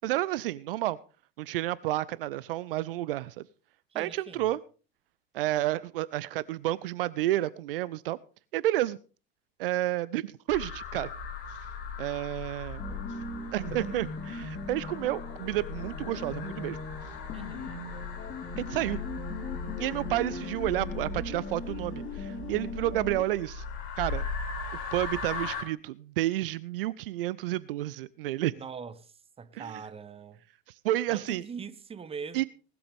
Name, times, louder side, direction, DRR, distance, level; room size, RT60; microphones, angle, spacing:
voice 1, 0.0-1.0 1.4-3.4 3.9-4.6 5.3-8.2 8.5-9.0 9.6-11.1 12.0-12.8 13.5-16.8 18.6-19.0 19.8-23.6 24.0-24.3 24.9-28.5 29.6-29.7 30.8-31.4 32.3-32.4, right 15 dB, 60° right, 0.6 m, -30 dB
voice 2, 3.9-4.5 17.3-17.8 28.5-30.4 31.1-32.5, right 6 dB, 20° right, 1.0 m, -42 dB
sound 1, 10.5-25.6, left 4 dB, 55° left, 4.2 m, -39 dB
sound 2, 12.8-23.2, left 2 dB, 30° left, 3.8 m, -40 dB
19.0 x 13.0 x 3.5 m
figure-of-eight pair, 70°, 31 cm